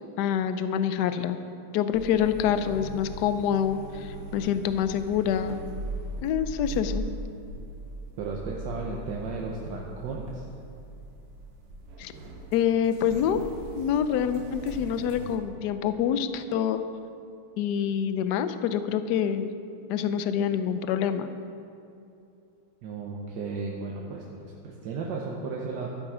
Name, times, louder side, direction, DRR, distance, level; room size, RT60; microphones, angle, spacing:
voice 1, 0.2-1.4 1.7-5.6 6.2-7.1 12.0-12.1 12.5-13.5 13.8-16.8 17.6-19.5 19.9-21.3, left 8 dB, 75° left, 11 dB, 0.9 m, -26 dB
sound 1, 1.9-15.4, right 2 dB, 85° right, 2.0 m, -40 dB
voice 2, 8.2-10.5 22.8-25.9, right 4 dB, 60° right, -2 dB, 1.4 m, -34 dB
12.0 x 8.8 x 5.0 m, 2.6 s
omnidirectional pair, 2.4 m